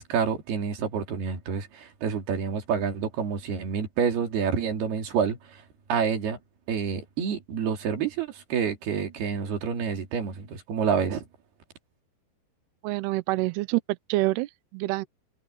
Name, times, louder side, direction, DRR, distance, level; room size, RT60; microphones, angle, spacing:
voice 1, 0.0-5.4 5.9-6.4 6.7-11.2, right 7 dB, 55° right, 4.7 m, -28 dB
voice 2, 12.8-15.1, right 19 dB, 90° right, 2.3 m, -27 dB
omnidirectional pair, 5.6 m